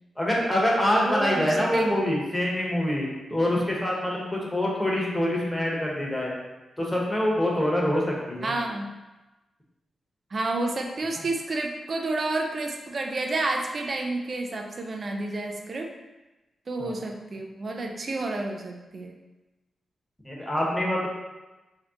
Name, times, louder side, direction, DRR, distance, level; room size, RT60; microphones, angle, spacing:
voice 1, 0.2-6.4 6.8-8.5 16.8-16.9 20.2-21.1, left 1 dB, 10° left, -3 dB, 1.0 m, -25 dB
voice 2, 0.9-2.2 8.4-8.9 10.3-15.9 16.7-19.1, right 2 dB, 45° right, 2 dB, 0.5 m, -30 dB
3.3 x 2.8 x 3.6 m, 1.1 s
cardioid pair, 80°, 0 cm